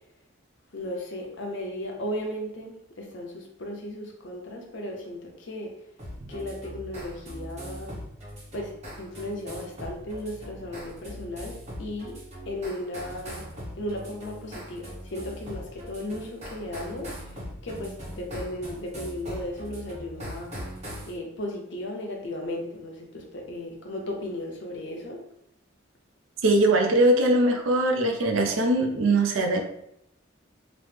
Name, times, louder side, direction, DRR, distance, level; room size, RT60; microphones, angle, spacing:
voice 1, 0.7-5.8 6.3-7.9 8.5-12.2 12.5-13.4 13.8-17.4 17.6-20.5 21.0-25.2, left 1 dB, 70° left, 1 dB, 0.6 m, -35 dB
sound 1, 6.0-21.1, equal, 35° right, 1.1 m, -40 dB
voice 2, 26.4-29.6, right 1 dB, 85° right, 4 dB, 0.5 m, -21 dB
3.0 x 2.0 x 3.2 m, 0.76 s
head